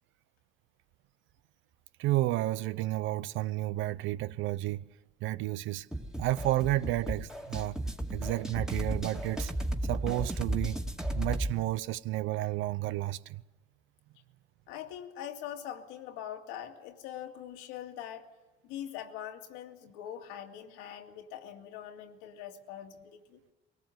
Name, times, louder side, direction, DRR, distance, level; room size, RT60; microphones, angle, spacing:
voice 1, 2.0-4.9 5.2-5.9 6.2-7.8 8.1-9.5 9.8-10.8 11.1-13.4, right 16 dB, 70° right, 0.8 m, -31 dB
sound 1, 5.9-11.5, right 1 dB, 5° right, 2.2 m, -34 dB
voice 2, 14.7-18.3 18.6-23.4, left 10 dB, 90° left, 2.2 m, -43 dB
21.5 x 18.5 x 8.0 m
cardioid pair, 100°, 21 cm